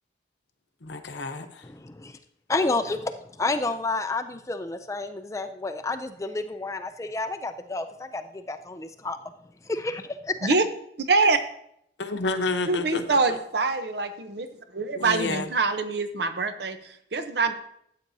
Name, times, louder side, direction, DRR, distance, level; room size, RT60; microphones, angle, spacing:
voice 1, 0.8-1.7 12.0-13.4 15.0-15.5, left 3 dB, 75° left, 7 dB, 0.9 m, -30 dB
voice 2, 1.6-2.2 2.5-9.2 9.6-10.5, left 3 dB, 15° left, 9 dB, 0.4 m, -30 dB
voice 3, 11.0-11.4 12.7-14.5 14.7-17.5, right 3 dB, 65° right, 9 dB, 0.8 m, -25 dB
13.5 x 8.4 x 2.7 m, 0.71 s
head